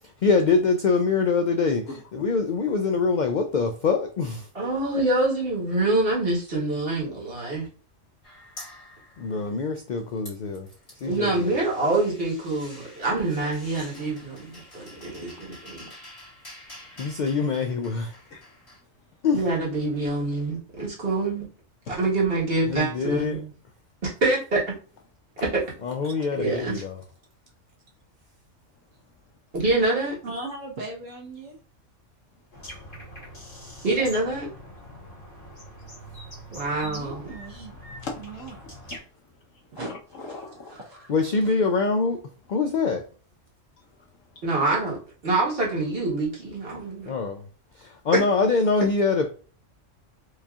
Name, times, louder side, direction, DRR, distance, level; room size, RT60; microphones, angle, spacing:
voice 1, 0.2-1.8 2.1-4.5 9.2-10.7 11.0-11.6 17.0-18.2 19.2-19.4 22.7-23.4 25.8-27.0 41.1-42.2 42.5-43.0 47.1-47.4 47.8-49.3, left 4 dB, 70° left, 0.4 m, -24 dB
voice 2, 4.5-7.7 11.0-15.9 19.3-21.4 21.9-23.5 24.0-24.6 25.4-25.6 26.4-26.8 29.5-30.2 33.8-34.5 36.5-37.3 44.4-45.0 45.2-47.1 48.1-48.2, right 2 dB, 50° right, 1.6 m, -25 dB
sound 1, 8.2-9.7 10.0-18.8, left 1 dB, 55° left, 2.3 m, -48 dB
voice 3, 16.8-17.1 18.3-18.5 38.0-39.1 39.5-40.8 43.8-44.4, left 3 dB, 90° left, 1.3 m, -41 dB
voice 4, 30.2-31.6 36.8-37.8 38.2-38.5 39.7-41.5, right 2 dB, 90° right, 1.5 m, -39 dB
sound 2, 32.5-39.0, equal, 30° left, 1.6 m, -43 dB
4.7 x 2.8 x 2.3 m
omnidirectional pair, 1.3 m